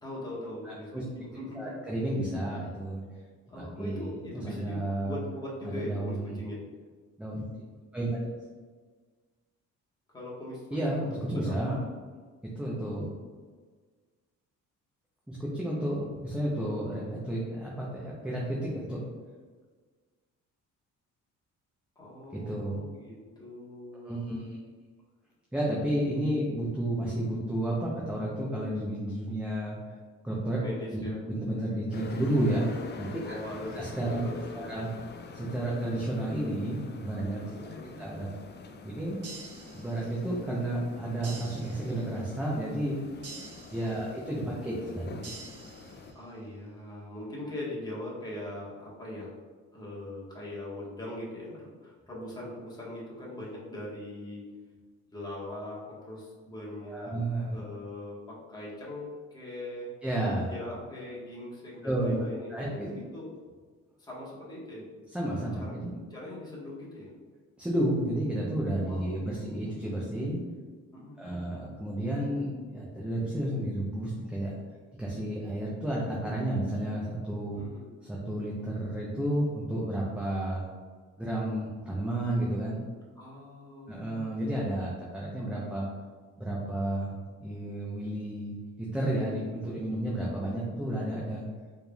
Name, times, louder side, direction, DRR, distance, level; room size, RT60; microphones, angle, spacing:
voice 1, 0.0-1.7 3.5-6.6 10.1-11.6 21.9-24.4 30.6-31.2 33.2-33.8 34.0-34.7 37.4-38.0 43.9-44.0 46.1-49.3 49.7-54.5 55.1-57.1 57.5-59.9 60.5-63.3 64.0-64.9 65.5-67.1 68.8-69.7 70.9-71.4 77.5-77.9 83.2-84.3, left 1 dB, 15° left, -6 dB, 1.4 m, -41 dB
voice 2, 0.6-1.0 1.5-3.0 3.6-5.2 5.6-6.4 7.2-7.4 7.9-8.2 10.7-11.0 11.3-11.8 12.5-13.0 15.3-19.0 22.3-22.8 24.0-24.6 25.5-30.0 30.2-30.6 30.9-33.1 33.7-34.3 34.5-34.9 35.3-37.4 38.0-38.3 38.8-39.2 39.7-43.0 43.7-45.1 56.8-57.6 60.0-60.5 61.8-62.2 62.5-63.0 65.1-65.9 67.6-70.4 71.2-74.5 75.0-77.6 78.0-80.6 81.2-82.8 83.9-85.9 86.4-87.1 87.4-91.4, right 1 dB, 5° right, -5 dB, 0.7 m, -31 dB
sound 1, 31.9-46.1, left 3 dB, 35° left, 0.4 m, -45 dB
sound 2, 39.2-40.3 41.2-42.3 43.2-44.3 45.2-46.3, right 4 dB, 55° right, 0.9 m, -47 dB
4.5 x 3.4 x 2.4 m, 1.5 s
cardioid pair, 90°, 30 cm